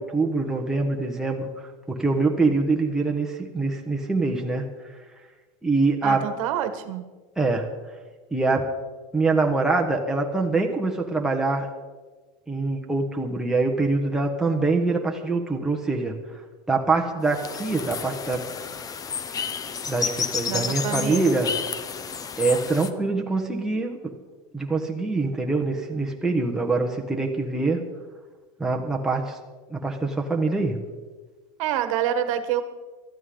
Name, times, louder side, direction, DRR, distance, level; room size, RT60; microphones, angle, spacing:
voice 1, 0.0-1.5 1.9-4.7 5.6-6.2 7.4-7.7 8.3-8.7 9.1-11.7 12.5-16.2 16.7-18.4 19.9-21.5 22.4-24.1 24.5-27.8 28.6-29.4 29.7-30.8, right 3 dB, 5° right, 0 dB, 1.4 m, -24 dB
voice 2, 6.0-7.1 20.5-21.3 31.6-32.6, right 10 dB, 80° right, 10 dB, 1.4 m, -27 dB
sound 1, 17.2-22.9, left 6 dB, 20° left, 0.7 m, -31 dB
18.5 x 13.0 x 3.9 m, 1.3 s
supercardioid pair, 145°, 17 cm